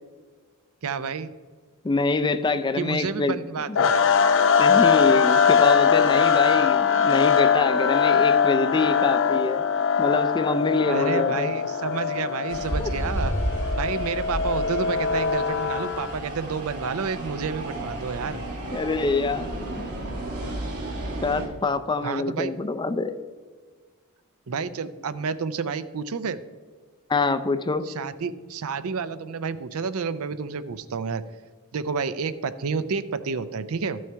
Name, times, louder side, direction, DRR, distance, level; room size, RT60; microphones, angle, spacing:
voice 1, 0.8-1.3 2.8-3.9 10.9-13.3 13.8-18.4 22.0-22.5 24.5-26.4 27.8-31.2 31.7-34.0, right 5 dB, 70° right, 13 dB, 0.5 m, -30 dB
voice 2, 1.8-3.4 4.6-9.6 10.0-11.5 12.8-12.9 18.7-19.8 21.2-23.1 27.1-27.9, left 3 dB, 20° left, 10 dB, 0.4 m, -25 dB
sound 1, 3.8-16.1, left 6 dB, 60° left, 0.6 m, -21 dB
sound 2, 12.5-21.5, right 1 dB, 85° right, 2.9 m, -32 dB
12.5 x 6.3 x 4.5 m, 1.5 s
head